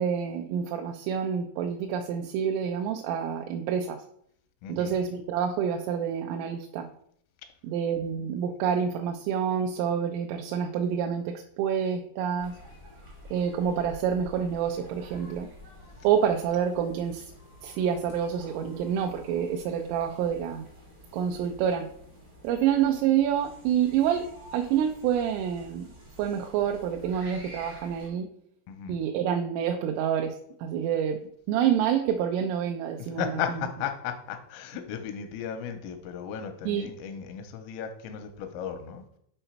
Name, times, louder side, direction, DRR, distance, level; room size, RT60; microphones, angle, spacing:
voice 1, 0.0-4.0 4.7-6.9 7.6-12.6 13.3-15.5 16.0-17.3 17.6-20.6 21.1-21.9 22.4-25.9 26.2-28.3 28.9-30.3 30.6-31.2 31.5-33.4 36.7-36.9, right 8 dB, 85° right, 3 dB, 3.0 m, -27 dB
voice 2, 4.6-5.0 8.0-8.3 28.7-29.0 33.0-39.0, left 8 dB, 85° left, 7 dB, 3.3 m, -35 dB
sound 1, 12.4-28.1, equal, 65° right, 0.9 m, -49 dB
8.0 x 4.8 x 4.4 m, 0.68 s
omnidirectional pair, 6.0 m